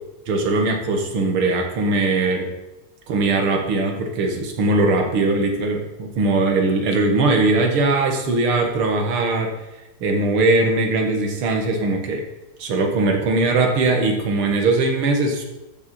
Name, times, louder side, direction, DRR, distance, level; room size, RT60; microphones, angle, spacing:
voice 1, 0.3-2.5 3.1-9.5 10.0-12.2 12.6-15.4, right 2 dB, 90° right, 3 dB, 2.4 m, -20 dB
13.5 x 7.5 x 4.2 m, 0.99 s
omnidirectional pair, 2.3 m